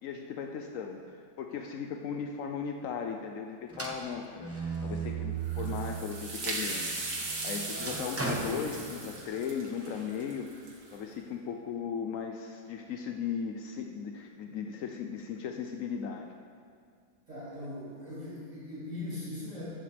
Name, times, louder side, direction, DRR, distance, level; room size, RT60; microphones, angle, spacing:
voice 1, 0.0-7.0 7.4-10.5 10.9-16.3, left 7 dB, 75° left, 3 dB, 0.7 m, -37 dB
sound 1, 3.7-6.1 6.6-9.4, right 5 dB, 20° right, 0.4 m, -37 dB
sound 2, 5.4-11.0, right 2 dB, 60° right, 2.3 m, -38 dB
voice 2, 17.3-19.6, left 1 dB, 40° right, -10 dB, 3.4 m, -40 dB
14.0 x 13.5 x 3.4 m, 2.2 s
omnidirectional pair, 2.1 m